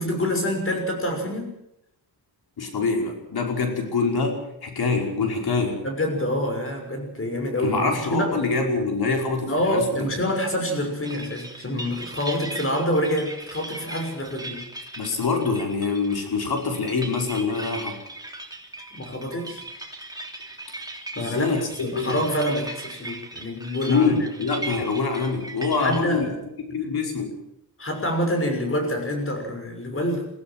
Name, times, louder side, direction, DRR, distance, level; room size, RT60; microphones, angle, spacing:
voice 1, 0.0-1.5 5.8-8.4 9.4-14.6 18.9-19.6 21.2-24.1 25.7-26.3 27.8-30.3, equal, 35° left, 4 dB, 6.4 m, -26 dB
voice 2, 2.6-5.8 7.6-9.8 15.0-18.0 21.2-22.2 23.9-26.3 26.7-27.4, left 4 dB, 70° left, 2 dB, 5.3 m, -25 dB
sound 1, 11.0-26.0, right 2 dB, 10° right, 3.2 m, -38 dB
23.0 x 16.0 x 7.6 m, 0.81 s
wide cardioid pair, 110°, 39 cm